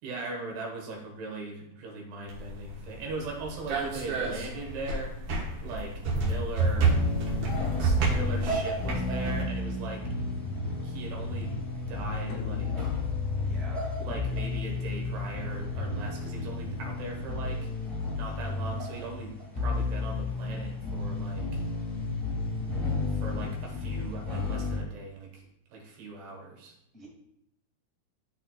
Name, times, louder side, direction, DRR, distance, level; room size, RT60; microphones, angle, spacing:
voice 1, 0.0-5.2 5.6-7.0 7.8-10.0 10.8-12.9 14.0-17.7 18.2-21.6 23.1-25.5 25.7-26.7, right 3 dB, 90° right, 0 dB, 3.5 m, -39 dB
sound 1, 2.3-9.4, right 3 dB, 75° right, 3.1 m, -29 dB
sound 2, 6.8-24.8, left 2 dB, 10° left, 1.0 m, -32 dB
sound 3, 12.3-17.5, left 9 dB, 75° left, 1.5 m, -37 dB
voice 2, 13.4-13.9 26.9-27.1, equal, 30° left, -6 dB, 0.6 m, -47 dB
12.5 x 4.4 x 2.4 m, 0.77 s
omnidirectional pair, 4.5 m